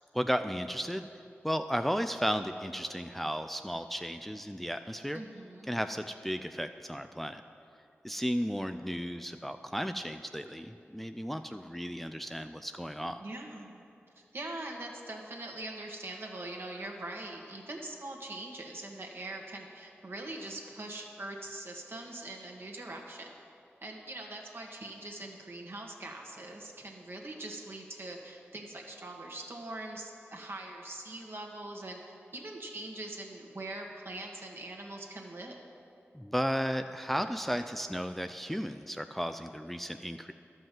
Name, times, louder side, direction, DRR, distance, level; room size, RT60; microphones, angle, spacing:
voice 1, 0.1-1.1 1.4-5.2 5.7-7.4 8.0-13.2 36.1-40.3, equal, 5° left, 8 dB, 0.4 m, -34 dB
voice 2, 5.1-5.8 13.2-13.8 14.3-23.3 23.8-35.6, right 2 dB, 55° right, 1 dB, 1.6 m, -42 dB
11.5 x 5.4 x 7.5 m, 2.6 s
cardioid pair, 40°, 5 cm